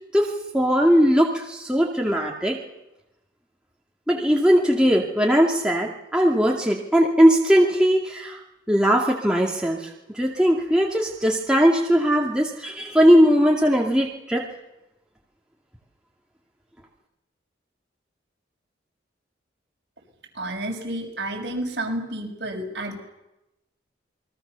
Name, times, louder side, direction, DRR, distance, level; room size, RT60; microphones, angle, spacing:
voice 1, 0.1-2.6 4.1-8.4 8.7-9.8 10.1-14.5, equal, 5° right, -2 dB, 2.2 m, -19 dB
voice 2, 20.3-23.0, right 1 dB, 60° right, 0 dB, 6.6 m, -30 dB
28.0 x 22.0 x 7.0 m, 0.93 s
head